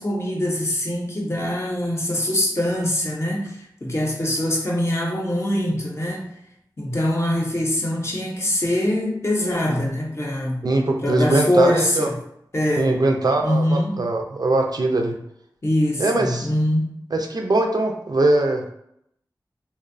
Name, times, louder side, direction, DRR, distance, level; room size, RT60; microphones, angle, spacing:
voice 1, 0.0-6.3 6.8-10.6 11.0-12.1 12.5-12.9 13.4-14.0 15.6-16.9, left 1 dB, 35° left, -1 dB, 0.6 m, -23 dB
voice 2, 10.6-12.1 12.8-15.2 16.0-16.5 17.1-18.7, right 2 dB, 55° right, 3 dB, 0.3 m, -21 dB
2.6 x 2.0 x 2.5 m, 0.75 s
wide cardioid pair, 65°, 8 cm